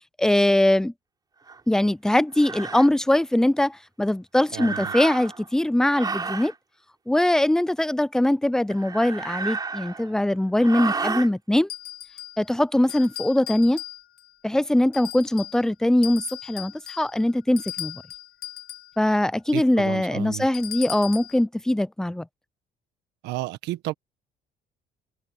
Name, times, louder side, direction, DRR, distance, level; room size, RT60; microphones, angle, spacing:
voice 1, 0.2-0.9 1.7-6.5 7.1-11.7 12.4-13.8 14.4-18.0 19.0-22.3, left 1 dB, 5° left, 0.4 m, -22 dB
sound 1, 1.5-1.6 2.4-2.9 4.5-5.5 5.9-6.5 8.7-10.2 10.6-11.3, right 4 dB, 25° right, 3.6 m, -31 dB
voice 2, 4.5-4.9 19.5-20.5 23.2-23.9, right 17 dB, 85° right, 1.3 m, -32 dB
sound 2, 11.7-12.5 12.9-14.3 14.9-15.6 16.0-19.0 20.5-21.4, left 12 dB, 65° left, 1.8 m, -38 dB
open air
cardioid pair, 110°, 17 cm